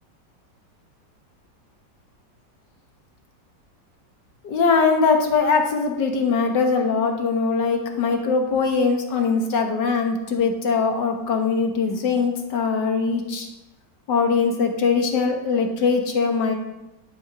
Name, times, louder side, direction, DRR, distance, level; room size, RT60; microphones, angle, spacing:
voice 1, 4.4-13.5 14.1-16.5, left 5 dB, 70° left, 3 dB, 2.0 m, -21 dB
11.0 x 6.5 x 5.4 m, 0.97 s
omnidirectional pair, 2.0 m